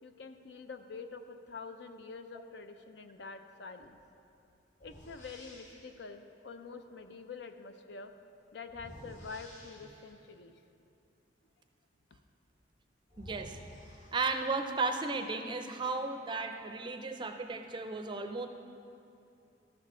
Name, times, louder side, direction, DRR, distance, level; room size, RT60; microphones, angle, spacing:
voice 1, 0.0-4.0 4.8-8.1 8.5-10.5, left 4 dB, 65° left, 8 dB, 0.5 m, -46 dB
sound 1, 3.8-4.0 4.8-6.0 8.7-10.3 12.5-12.6 13.1-14.7, equal, 40° left, 1.5 m, -52 dB
voice 2, 13.2-13.6 14.1-18.5, right 3 dB, 25° right, 6 dB, 0.5 m, -34 dB
13.0 x 7.6 x 3.7 m, 2.6 s
head